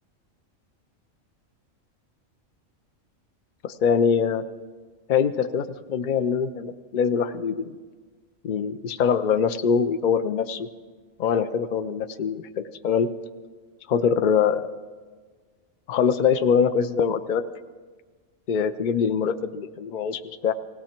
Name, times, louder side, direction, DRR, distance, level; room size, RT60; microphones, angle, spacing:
voice 1, 3.6-4.4 5.1-7.7 8.4-10.7 11.2-13.1 13.9-14.7 15.9-17.4 18.5-20.5, left 6 dB, 65° left, 10 dB, 0.5 m, -23 dB
18.0 x 17.0 x 4.4 m, 1.5 s
omnidirectional pair, 1.4 m